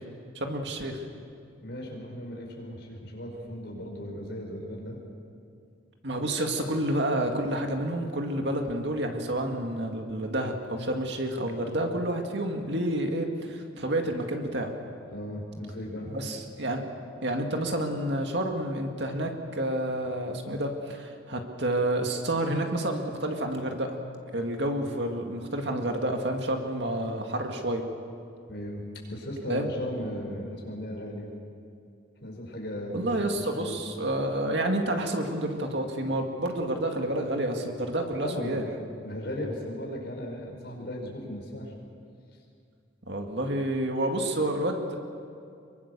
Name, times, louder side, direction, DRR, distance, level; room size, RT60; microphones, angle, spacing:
voice 1, 0.3-1.0 6.0-14.7 16.1-16.8 17.2-23.9 24.3-27.8 29.5-29.7 32.9-38.6 43.1-45.0, right 1 dB, 60° right, 3 dB, 2.2 m, -29 dB
voice 2, 1.6-5.0 15.1-16.1 28.5-31.3 32.2-33.8 38.2-38.7 39.0-41.7, equal, 60° left, -1 dB, 5.5 m, -37 dB
24.5 x 23.5 x 6.9 m, 2.4 s
head